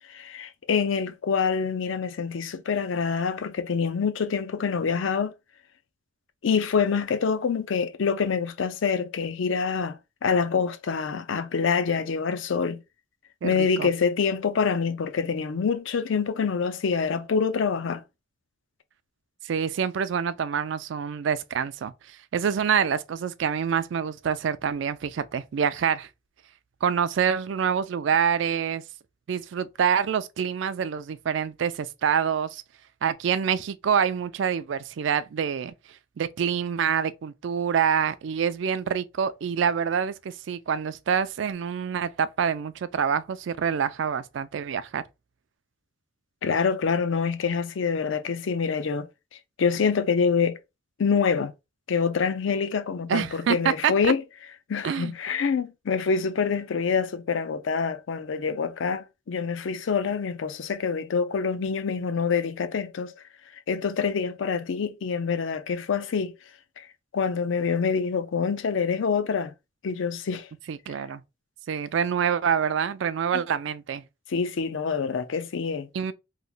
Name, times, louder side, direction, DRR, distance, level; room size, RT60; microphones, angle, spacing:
voice 1, 0.1-5.3 6.4-10.0 10.2-12.8 13.4-18.0 46.4-49.1 49.6-50.6 51.0-51.5 51.9-54.2 54.7-63.1 63.7-66.3 66.8-66.9 67.1-69.5 69.8-70.5 74.3-75.9, left 5 dB, 70° left, 0.4 m, -26 dB
voice 2, 13.4-13.9 19.4-26.1 26.8-28.8 29.3-32.6 33.0-35.7 36.2-45.0 53.1-54.1 54.8-55.1 70.7-71.2 71.7-74.0 75.9-76.1, right 7 dB, 65° right, 0.3 m, -26 dB
3.0 x 2.1 x 3.8 m
head